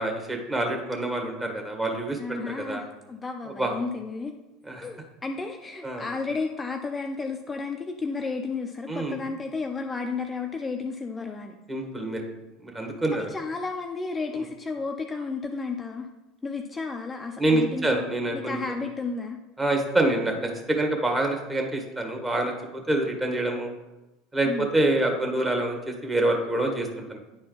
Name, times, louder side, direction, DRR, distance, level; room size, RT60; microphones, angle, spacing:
voice 1, 0.0-2.8 3.6-3.7 4.7-4.9 5.8-6.0 8.9-9.2 11.7-12.2 12.6-13.2 17.4-18.6 19.6-23.7 24.3-27.2, right 1 dB, 20° right, 2 dB, 1.8 m, -26 dB
voice 2, 2.2-4.3 4.8-11.5 13.1-16.1 16.4-18.0 18.3-19.4 24.5-24.7, left 4 dB, 20° left, 3 dB, 0.6 m, -32 dB
9.5 x 4.3 x 4.0 m, 1.0 s
hypercardioid pair, 85°, 0 cm